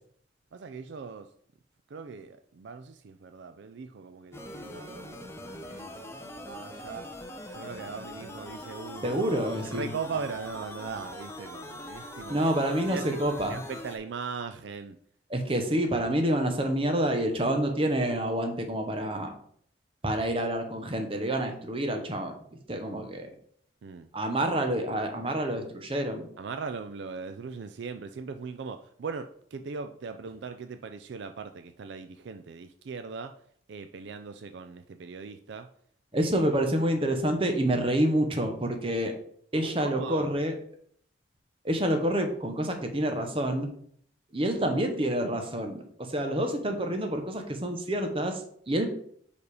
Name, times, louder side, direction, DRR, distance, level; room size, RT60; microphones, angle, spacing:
voice 1, 0.5-1.3 1.9-7.1 7.5-9.2 9.7-12.5 12.8-13.2 13.5-15.0 23.8-24.1 26.4-33.3 33.7-35.7 36.1-36.3 39.5-40.3, right 5 dB, 65° right, 8 dB, 0.4 m, -39 dB
sound 1, 4.3-14.0, left 1 dB, 15° left, 0.6 m, -42 dB
voice 2, 9.0-9.9 12.3-13.6 15.3-19.3 20.0-22.3 22.7-23.3 24.1-26.3 36.1-39.1 39.5-40.6 41.6-43.7 44.3-48.9, right 1 dB, 30° right, 5 dB, 0.9 m, -28 dB
5.2 x 4.8 x 4.8 m, 0.62 s
head